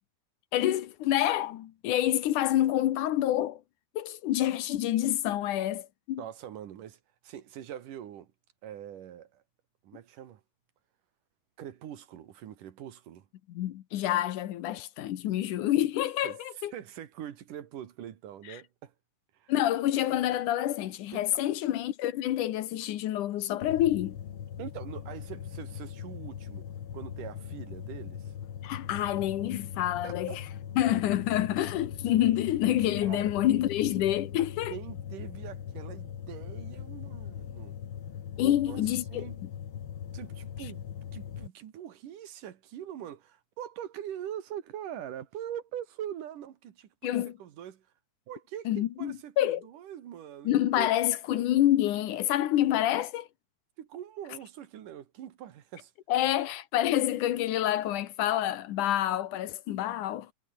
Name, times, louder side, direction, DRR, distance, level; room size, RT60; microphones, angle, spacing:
voice 1, 0.5-3.6 4.0-6.2 13.5-16.7 18.5-18.6 19.5-24.2 28.6-30.5 30.8-34.8 38.4-39.5 47.0-47.4 48.7-49.6 50.4-53.3 56.1-60.3, left 13 dB, 75° left, 2.6 m, -27 dB
voice 2, 6.2-8.3 8.6-9.4 9.8-10.4 11.6-13.3 16.2-16.4 16.7-18.9 19.3-19.5 21.1-21.3 24.6-26.7 26.9-28.3 30.0-30.4 33.0-33.3 34.7-37.8 38.4-38.8 39.1-39.4 40.1-40.8 41.1-47.9 48.3-50.9 53.8-55.9, right 10 dB, 80° right, 3.3 m, -43 dB
sound 1, 23.6-41.5, left 9 dB, 50° left, 1.9 m, -40 dB
omnidirectional pair, 3.7 m